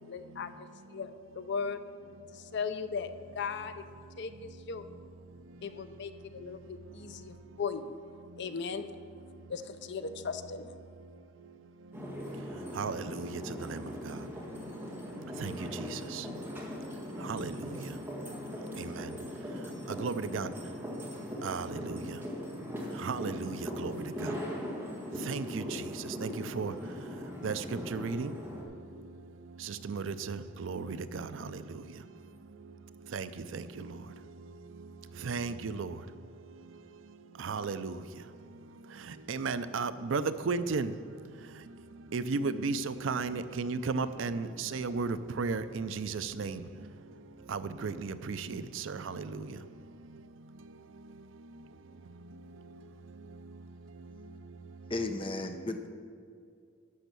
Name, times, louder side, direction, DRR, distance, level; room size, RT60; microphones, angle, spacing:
voice 1, 0.0-1.8 2.3-3.8 4.2-4.9 5.6-8.0 8.4-8.9 9.5-10.8, left 5 dB, 60° left, 10 dB, 0.5 m, -38 dB
sound 1, 11.9-28.6, left 1 dB, 10° right, 1.7 m, -40 dB
voice 2, 12.8-13.8 15.4-15.5 16.1-16.2 17.3-17.5 18.8-18.9 20.0-20.5 21.4-22.0 23.0-23.9 25.3-25.6 26.2-26.7 27.4-27.6 27.9-28.3 29.7-31.3 33.1-33.3 33.5-33.6 35.3-35.9 37.4-37.9 39.3-40.9 42.1-46.6 47.5-49.4, right 4 dB, 70° right, 13 dB, 0.5 m, -34 dB
voice 3, 54.9-55.9, left 2 dB, 25° left, 5 dB, 0.8 m, -34 dB
12.0 x 5.5 x 6.9 m, 2.3 s
head